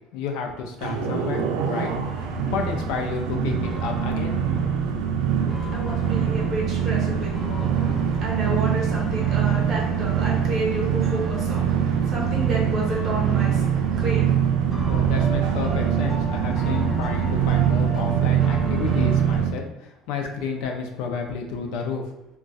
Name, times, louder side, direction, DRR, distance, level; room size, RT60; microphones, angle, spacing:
voice 1, 0.1-1.9 2.5-4.5 14.9-22.1, left 5 dB, 70° left, 3 dB, 0.5 m, -31 dB
sound 1, 0.8-19.5, right 8 dB, 85° right, 0.4 m, -23 dB
sound 2, 2.1-12.5 12.9-14.3 14.7-19.4, right 1 dB, 15° left, 1.3 m, -36 dB
voice 2, 4.8-15.1 16.3-16.4, right 2 dB, 30° right, -3 dB, 0.9 m, -31 dB
2.3 x 2.2 x 3.9 m, 0.90 s
cardioid pair, 175°, 0 cm